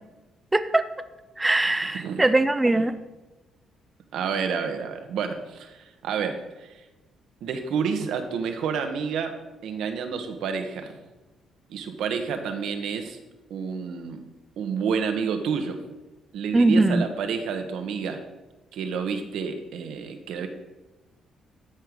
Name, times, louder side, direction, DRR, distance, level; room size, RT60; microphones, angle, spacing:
voice 1, 0.5-0.9 1.4-3.0 16.5-17.0, right 2 dB, 15° right, 12 dB, 0.6 m, -21 dB
voice 2, 4.1-6.8 7.4-9.4 9.6-11.0 11.7-13.2 13.5-14.2 14.6-15.8 16.3-18.2 18.7-20.5, right 6 dB, 80° right, 7 dB, 1.2 m, -29 dB
13.0 x 4.7 x 5.2 m, 1.1 s
cardioid pair, 90°, 0 cm